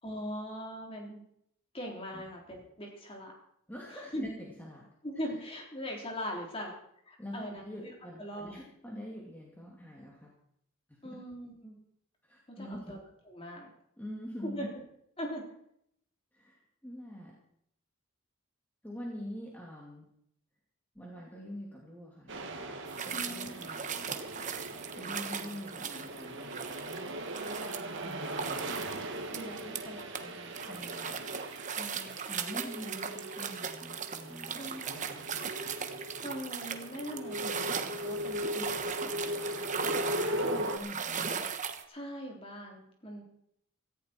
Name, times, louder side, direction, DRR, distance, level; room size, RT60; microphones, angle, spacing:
voice 1, 0.0-1.2 1.7-3.3 3.9-4.3 5.0-6.7 7.0-8.6 11.0-11.7 12.6-13.0 13.3-13.7 14.4-14.8 15.2-15.5 23.1-23.5 25.0-25.1 27.5-27.6 29.3-30.6 31.8-32.2 34.6-35.0 36.2-39.8 41.0-41.1 41.9-43.2, equal, 25° left, 0 dB, 3.7 m, -41 dB
voice 2, 3.7-4.8 7.2-10.3 11.0-11.2 12.3-12.9 14.0-14.7 16.3-17.4 18.8-20.1 20.9-22.4 23.0-24.2 25.0-26.7 28.0-28.5 30.6-31.2 32.2-35.4 40.3-41.5, equal, 10° left, -3 dB, 2.5 m, -45 dB
sound 1, 22.3-40.8, equal, 60° right, 2.0 m, -39 dB
sound 2, 22.9-30.2 30.5-41.8, right 6 dB, 35° right, 1.2 m, -38 dB
17.5 x 14.5 x 4.5 m, 0.71 s
head